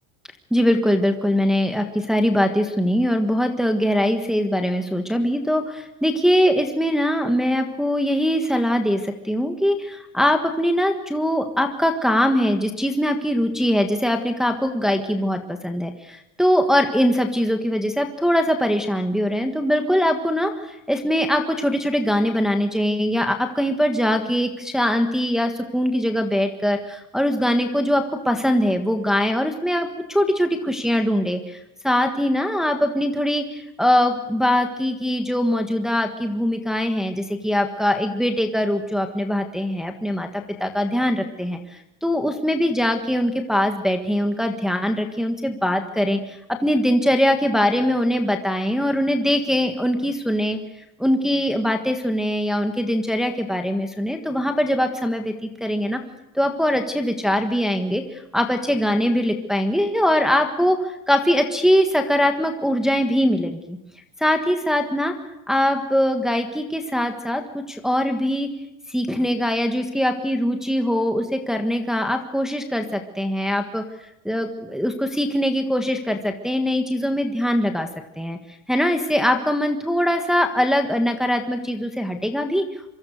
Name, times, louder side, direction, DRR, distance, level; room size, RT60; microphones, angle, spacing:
voice 1, 0.5-31.6 31.8-41.6 42.0-50.6 51.0-56.0 56.3-63.8 64.2-65.1 65.5-68.5 68.9-73.8 74.2-77.9 78.2-78.4 78.7-82.6, equal, ahead, 4 dB, 1.5 m, -22 dB
26.5 x 24.5 x 6.6 m, 0.89 s
cardioid pair, 170°, 39 cm